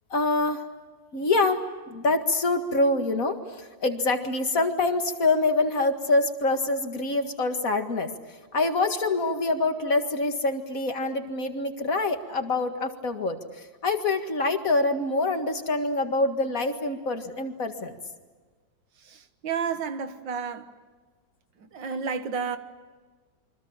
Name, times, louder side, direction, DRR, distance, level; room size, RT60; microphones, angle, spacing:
voice 1, 0.1-0.6 1.1-1.6 1.9-8.1 8.5-18.0, left 2 dB, 50° left, 2.3 m, -25 dB
voice 2, 19.0-20.7 21.6-22.6, right 6 dB, 85° right, 2.2 m, -31 dB
28.0 x 25.0 x 7.4 m
omnidirectional pair, 2.0 m